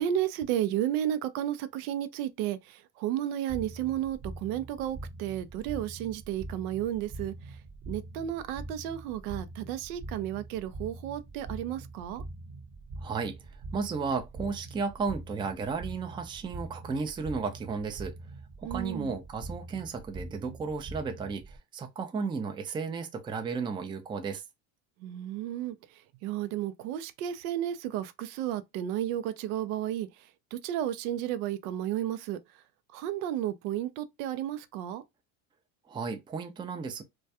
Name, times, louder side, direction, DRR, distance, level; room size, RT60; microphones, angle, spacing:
voice 1, 0.0-7.3 7.9-12.2 18.6-19.1 25.0-25.8 26.2-30.1 30.5-32.4 32.9-35.0, right 11 dB, 85° right, 0.6 m, -32 dB
sound 1, 3.5-21.6, right 2 dB, 30° right, 0.8 m, -43 dB
voice 2, 13.0-13.4 13.7-18.1 18.6-24.4 35.9-37.0, right 5 dB, 10° right, 0.3 m, -34 dB
2.2 x 2.2 x 2.7 m
supercardioid pair, 100°, 43 cm